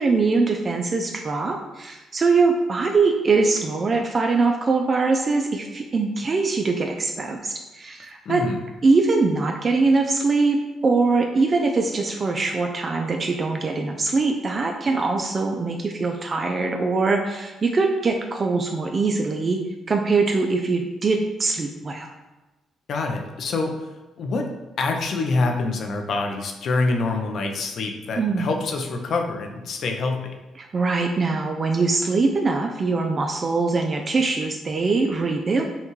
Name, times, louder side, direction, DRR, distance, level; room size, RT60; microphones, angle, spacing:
voice 1, 0.0-8.4 8.8-10.6 10.8-19.6 19.9-22.1 28.2-28.5 30.6-35.6, right 3 dB, 35° right, 2 dB, 0.4 m, -22 dB
voice 2, 8.3-8.6 22.9-23.9 24.2-24.5 24.8-30.4, left 3 dB, 60° left, 3 dB, 0.6 m, -26 dB
5.5 x 2.3 x 3.1 m, 1.1 s
cardioid pair, 90°, 0 cm